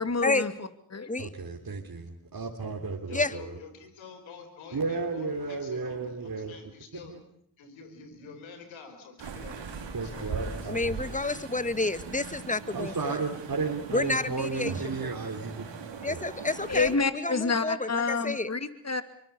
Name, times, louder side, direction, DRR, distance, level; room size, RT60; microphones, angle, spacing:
voice 1, 0.0-1.1 16.7-19.0, left 4 dB, 35° left, 10 dB, 2.6 m, -28 dB
voice 2, 1.2-3.6 4.7-6.6 7.1-7.2 9.9-10.8 12.7-15.7 16.1-16.3, right 4 dB, 50° right, 1 dB, 3.4 m, -33 dB
voice 3, 3.1-7.1 7.6-10.7, left 4 dB, 90° left, 7 dB, 4.6 m, -48 dB
sound 1, 9.2-17.0, right 5 dB, 75° right, 4.0 m, -40 dB
voice 4, 10.7-13.2 13.9-15.1 16.0-18.5, left 2 dB, 15° left, 13 dB, 1.9 m, -30 dB
24.5 x 24.0 x 7.1 m, 0.65 s
supercardioid pair, 40°, 45 cm